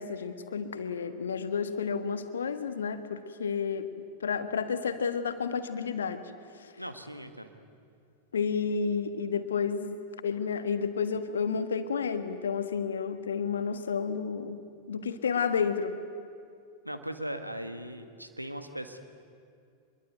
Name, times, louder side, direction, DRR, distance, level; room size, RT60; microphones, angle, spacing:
voice 1, 0.0-6.2 6.6-6.7 8.3-14.6 14.9-16.0, left 6 dB, 70° left, 10 dB, 1.5 m, -31 dB
voice 2, 6.8-7.6 16.8-19.0, right 1 dB, 90° right, 8 dB, 1.7 m, -39 dB
25.0 x 22.5 x 9.2 m, 2.4 s
figure-of-eight pair, 90°, 0 cm